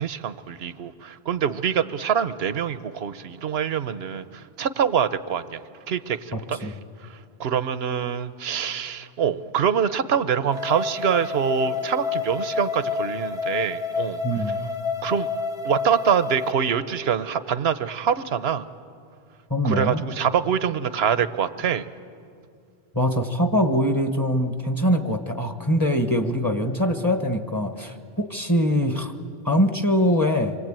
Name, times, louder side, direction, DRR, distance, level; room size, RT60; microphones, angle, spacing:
voice 1, 0.0-5.6 5.9-6.7 7.4-14.6 15.0-15.3 15.6-18.6 19.6-21.8, right 8 dB, 80° right, 13 dB, 1.1 m, -25 dB
voice 2, 6.3-6.7 14.2-14.6 19.5-20.0 22.9-29.1 29.4-30.6, equal, 20° left, 5 dB, 1.3 m, -23 dB
sound 1, 10.5-16.5, left 5 dB, 75° left, 1.9 m, -29 dB
27.0 x 24.0 x 8.9 m, 2.4 s
omnidirectional pair, 1.0 m